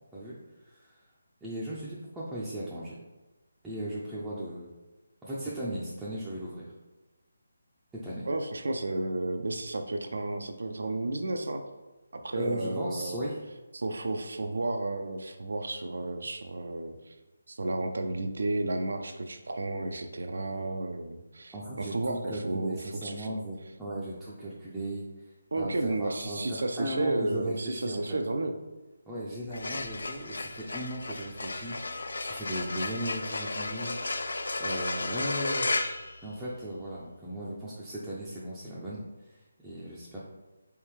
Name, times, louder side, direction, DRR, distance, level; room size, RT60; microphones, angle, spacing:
voice 1, 0.6-1.0 1.4-3.0 3.6-4.7 5.2-6.7 7.9-8.3 12.3-13.4 21.5-25.3 25.6-28.2 29.1-35.7 36.2-40.2, right 1 dB, 5° right, -10 dB, 0.5 m, -37 dB
voice 2, 8.3-11.6 12.1-13.2 13.7-17.2 17.5-23.4 25.5-28.5, right 2 dB, 55° right, 6 dB, 0.4 m, -32 dB
sound 1, 29.4-36.9, left 3 dB, 60° left, 0.3 m, -34 dB
4.3 x 3.5 x 3.1 m, 1.1 s
figure-of-eight pair, 150°, 0 cm